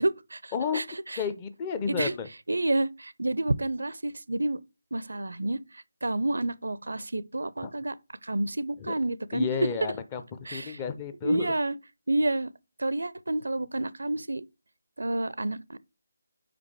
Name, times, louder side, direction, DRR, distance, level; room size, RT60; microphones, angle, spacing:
voice 1, 0.0-1.2 1.9-2.1 2.5-4.6 4.9-7.9 8.2-9.5 10.5-10.8 11.2-11.8 12.1-12.5 12.8-14.4 15.0-15.8, right 2 dB, 65° right, 0.5 m, -29 dB
voice 2, 0.5-0.8 1.2-2.3 7.6-7.7 8.8-8.9 9.3-11.6, left 6 dB, 20° left, 0.6 m, -32 dB
5.1 x 5.1 x 4.6 m
figure-of-eight pair, 155°, 0 cm